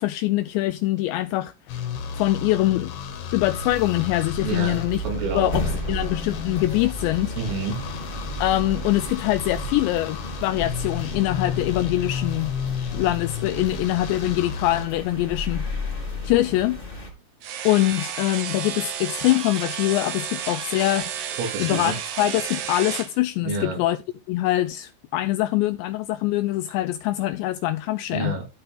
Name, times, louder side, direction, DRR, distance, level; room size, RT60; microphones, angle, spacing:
voice 1, 0.0-1.5 2.2-2.9 3.3-5.0 5.3-7.4 8.4-12.5 12.9-15.6 16.2-16.8 17.6-21.1 21.6-24.0 24.3-28.3, left 16 dB, 85° left, 2.5 m, -23 dB
sound 1, 1.7-14.9, left 5 dB, 70° left, 4.2 m, -33 dB
sound 2, 3.4-17.1, left 1 dB, 15° left, 2.7 m, -34 dB
voice 2, 4.4-5.7 7.4-7.8 21.4-22.0 23.4-23.8 28.1-28.5, right 3 dB, 80° right, 5.7 m, -29 dB
sound 3, 17.4-23.1, right 9 dB, 65° right, 3.3 m, -32 dB
13.5 x 5.6 x 3.9 m
omnidirectional pair, 5.7 m